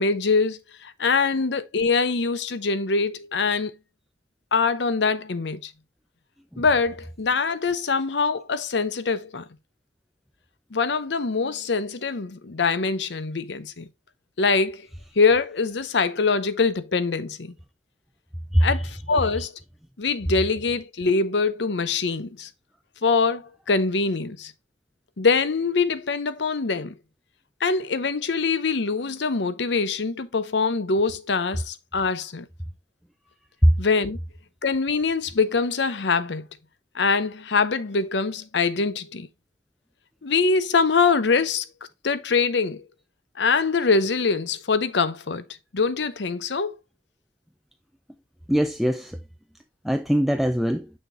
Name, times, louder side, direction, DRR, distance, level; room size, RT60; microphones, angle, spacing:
voice 1, 0.0-3.7 4.5-5.7 6.6-9.5 10.7-13.9 14.4-14.9 15.2-17.5 18.6-19.5 20.0-22.5 23.0-24.5 25.2-27.0 27.6-32.5 33.8-34.2 34.6-36.5 36.9-39.3 40.2-41.6 42.0-42.8 43.4-45.4 45.7-46.8, left 4 dB, 75° left, 0.7 m, -23 dB
voice 2, 48.5-49.2 49.8-50.9, equal, ahead, 0.4 m, -20 dB
6.6 x 6.4 x 2.5 m
head